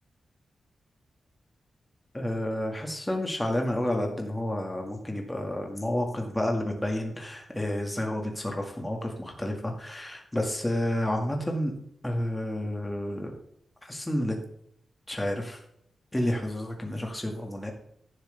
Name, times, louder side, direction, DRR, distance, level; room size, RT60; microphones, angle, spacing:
voice 1, 2.1-11.7 12.0-13.3 13.8-14.4 15.1-15.6 16.1-17.7, left 1 dB, 10° left, 2 dB, 1.9 m, -30 dB
14.5 x 7.4 x 3.4 m, 0.72 s
wide cardioid pair, 175°, 0 cm